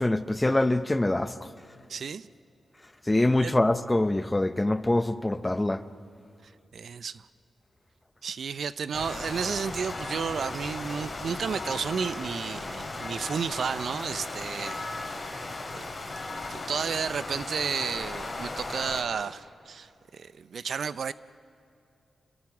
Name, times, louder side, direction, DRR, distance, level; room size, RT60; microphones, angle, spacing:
voice 1, 0.0-1.5 3.1-5.8, left 1 dB, 15° left, 0.8 m, -24 dB
voice 2, 1.9-2.3 3.4-3.5 6.4-7.3 8.2-14.9 15.7-15.9 16.5-21.1, right 6 dB, 70° right, 0.6 m, -32 dB
sound 1, 8.9-19.0, left 2 dB, 35° left, 3.9 m, -36 dB
28.0 x 22.0 x 6.1 m
cardioid pair, 95°, 0 cm